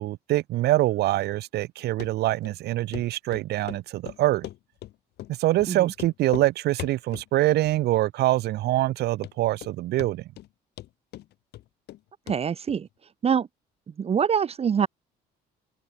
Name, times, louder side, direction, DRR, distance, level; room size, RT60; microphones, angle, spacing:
voice 1, 0.0-4.5 5.3-10.2, right 16 dB, 75° right, 1.3 m, -24 dB
Run, 2.0-2.1 2.4-2.5 2.9-3.0 3.3-4.9 5.2-5.3 5.6-5.7 5.9-6.5 6.8-7.3 7.6-8.1 8.3-8.4 8.9-9.0 9.2-9.7 10.0-10.5 10.8-12.0 12.3-12.4 12.7-12.8, left 15 dB, 75° left, 6.3 m, -39 dB
voice 2, 12.3-12.9 13.2-13.5 14.0-14.9, right 7 dB, 35° right, 1.4 m, -24 dB
cardioid pair, 110°, 17 cm